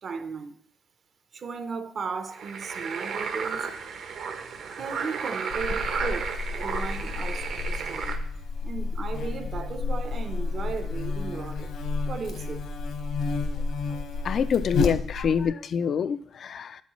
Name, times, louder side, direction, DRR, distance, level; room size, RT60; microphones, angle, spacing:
voice 1, 0.0-0.6 1.3-3.7 4.8-8.2 8.6-11.7 12.1-12.7, right 5 dB, 45° right, 0.7 m, -36 dB
sound 1, 2.3-8.2, right 6 dB, 65° right, 1.0 m, -33 dB
Buzz, 5.5-15.5, left 4 dB, 70° left, 1.0 m, -31 dB
voice 2, 14.2-16.8, left 7 dB, 45° left, 0.3 m, -26 dB
10.5 x 8.2 x 3.1 m
cardioid pair, 145°, 0 cm